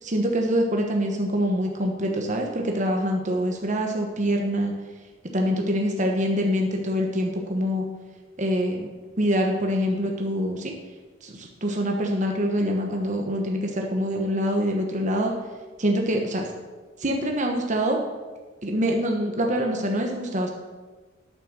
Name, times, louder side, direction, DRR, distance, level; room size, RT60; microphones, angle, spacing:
voice 1, 0.0-4.7 5.3-7.8 8.4-8.9 9.2-10.7 11.2-15.3 15.8-16.4 17.0-18.0 18.6-20.5, equal, 35° right, 1 dB, 1.2 m, -25 dB
9.2 x 7.3 x 6.7 m, 1.3 s
head